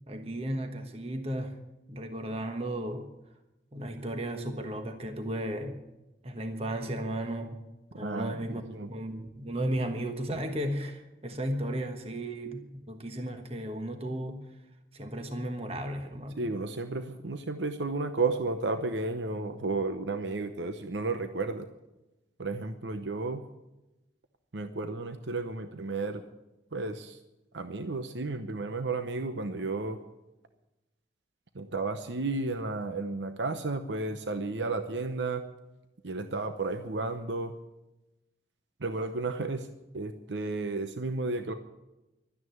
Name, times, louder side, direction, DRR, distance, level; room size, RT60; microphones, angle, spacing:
voice 1, 0.1-1.6 1.9-3.1 3.7-5.8 6.2-7.6 7.9-14.4 14.9-16.5, right 1 dB, 35° right, 5 dB, 1.3 m, -34 dB
voice 2, 8.0-8.9 16.3-21.7 22.4-23.4 24.5-26.2 26.7-27.2 27.5-30.0 31.5-35.4 36.0-37.5 38.8-39.7 39.9-41.5, right 3 dB, 85° right, 8 dB, 0.9 m, -33 dB
12.5 x 9.6 x 9.4 m, 0.99 s
head